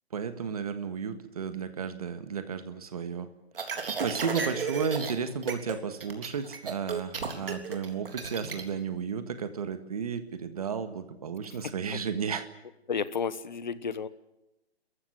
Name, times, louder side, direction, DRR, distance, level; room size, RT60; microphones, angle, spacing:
voice 1, 0.1-3.3 3.6-3.7 4.0-12.4, right 6 dB, 35° right, 10 dB, 1.7 m, -33 dB
sound 1, 3.5-5.1 5.4-5.8 6.0-8.6, right 5 dB, 60° right, 3.5 m, -33 dB
voice 2, 12.9-14.1, left 6 dB, 45° left, 16 dB, 1.1 m, -31 dB
28.5 x 15.0 x 9.7 m, 0.96 s
hypercardioid pair, 175°, 32 cm